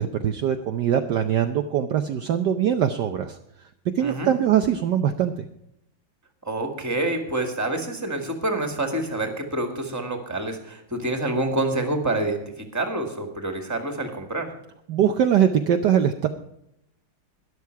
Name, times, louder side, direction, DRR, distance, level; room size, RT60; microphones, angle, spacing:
voice 1, 0.0-3.4 3.9-5.4 14.9-16.3, right 9 dB, 65° right, 7 dB, 1.2 m, -22 dB
voice 2, 4.0-4.4 6.4-14.5, right 2 dB, 10° right, 4 dB, 2.0 m, -27 dB
13.0 x 11.0 x 4.7 m, 0.78 s
omnidirectional pair, 2.2 m